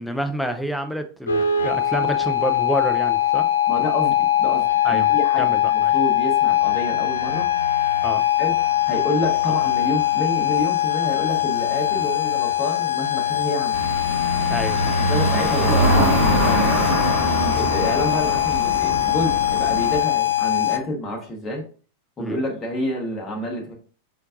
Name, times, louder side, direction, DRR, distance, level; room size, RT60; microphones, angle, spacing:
voice 1, 0.0-3.5 4.8-5.9 8.0-8.2 14.5-15.0 22.2-22.4, equal, 5° left, 7 dB, 0.5 m, -28 dB
sound 1, 1.3-20.8, left 11 dB, 70° left, 0.5 m, -22 dB
voice 2, 3.7-7.5 8.4-8.5 8.9-13.8 15.0-16.6 17.2-21.6 22.2-23.7, left 1 dB, 20° left, -1 dB, 1.1 m, -28 dB
sound 2, 13.7-20.0, equal, 15° right, 1.7 m, -23 dB
4.4 x 3.8 x 2.5 m, 0.40 s
figure-of-eight pair, 90°, 0 cm